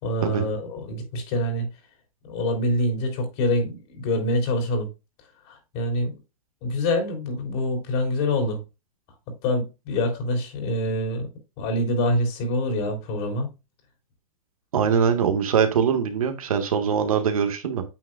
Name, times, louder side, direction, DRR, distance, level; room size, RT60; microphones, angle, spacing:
voice 1, 0.0-1.7 2.3-4.9 5.5-6.1 6.6-8.6 9.4-11.3 11.6-13.5, left 1 dB, 45° left, 3.3 m, -25 dB
voice 2, 14.7-17.8, right 7 dB, 90° right, 1.6 m, -22 dB
8.8 x 6.5 x 2.3 m
hypercardioid pair, 140°, 18 cm